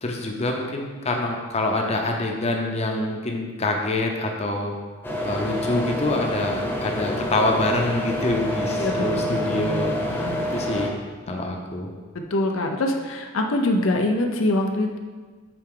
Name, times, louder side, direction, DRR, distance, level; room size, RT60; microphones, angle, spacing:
voice 1, 0.0-4.7 5.3-10.9 11.3-11.9, left 2 dB, 30° left, 1 dB, 0.7 m, -26 dB
sound 1, 5.0-10.9, left 1 dB, 10° left, 0.9 m, -27 dB
voice 2, 8.7-10.5 12.3-15.0, left 1 dB, 85° left, 3 dB, 0.6 m, -25 dB
7.6 x 4.6 x 3.8 m, 1.4 s
head